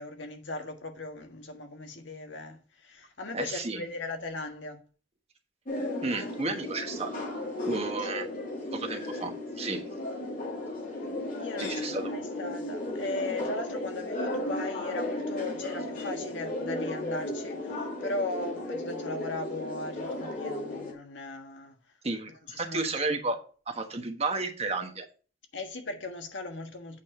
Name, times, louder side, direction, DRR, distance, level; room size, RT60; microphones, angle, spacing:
voice 1, 0.0-4.8 8.0-8.2 11.4-21.8 22.5-23.1 25.5-27.0, left 2 dB, 80° left, 1.5 m, -38 dB
voice 2, 3.3-3.8 6.0-7.2 7.6-8.3 8.7-9.8 11.6-12.1 22.0-23.4 23.7-25.0, right 3 dB, 35° right, 1.2 m, -32 dB
sound 1, 5.6-20.9, left 1 dB, 50° left, 2.7 m, -35 dB
8.6 x 4.2 x 5.4 m
head